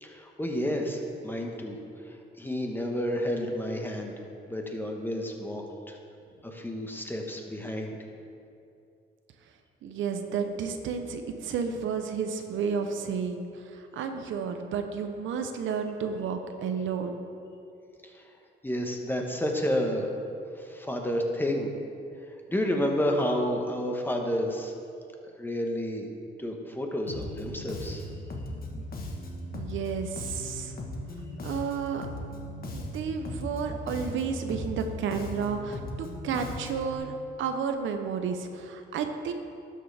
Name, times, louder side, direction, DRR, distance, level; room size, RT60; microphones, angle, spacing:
voice 1, 0.0-1.8 2.4-4.1 4.5-6.0 6.4-8.0 18.0-18.2 18.6-20.1 20.6-21.7 22.5-24.7 25.3-26.1 26.4-28.0, equal, 10° left, 2 dB, 1.2 m, -30 dB
voice 2, 9.8-17.2 29.5-30.8 31.4-32.1 32.7-37.1 37.4-39.3, right 6 dB, 80° right, 6 dB, 0.7 m, -32 dB
Bass guitar, 27.1-37.0, left 1 dB, 50° left, 1.3 m, -38 dB
12.5 x 6.6 x 3.4 m, 2.5 s
cardioid pair, 90°, 20 cm